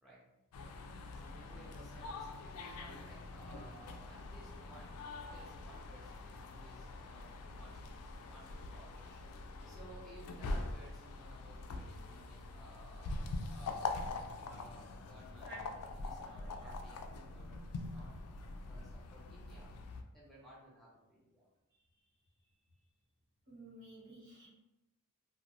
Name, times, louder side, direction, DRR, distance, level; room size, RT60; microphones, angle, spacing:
sound 1, 0.5-20.0, left 3 dB, 85° left, 0.3 m, -44 dB
voice 1, 1.1-8.9 9.3-13.2 13.5-14.0 14.4-15.5 16.0-17.0 17.3-18.2 18.7-19.7 20.1-21.5, right 1 dB, ahead, -7 dB, 0.5 m, -58 dB
voice 2, 15.4-15.8 16.2-16.7 22.0-22.1 23.5-24.5, right 2 dB, 60° right, -6 dB, 1.2 m, -53 dB
2.5 x 2.2 x 2.9 m, 0.95 s
head